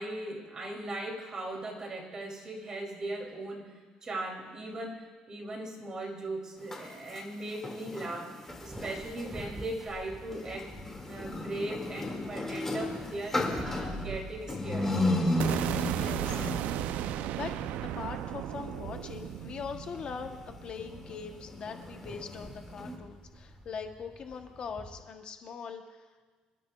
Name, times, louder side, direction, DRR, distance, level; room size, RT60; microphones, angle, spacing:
voice 1, 0.0-3.7 4.0-10.7 11.0-14.9, right 2 dB, 25° right, 0 dB, 2.6 m, -38 dB
sound 1, 6.6-9.4 10.2-23.0, left 1 dB, 15° left, 2.0 m, -35 dB
sound 2, 8.5-25.0, right 1 dB, 10° right, 1.3 m, -48 dB
sound 3, 15.4-21.4, right 13 dB, 75° right, 0.4 m, -35 dB
voice 2, 15.8-16.9 17.3-17.6 17.8-26.1, left 6 dB, 40° left, 5 dB, 0.9 m, -41 dB
26.5 x 12.5 x 2.3 m, 1.4 s
cardioid pair, 145°, 3 cm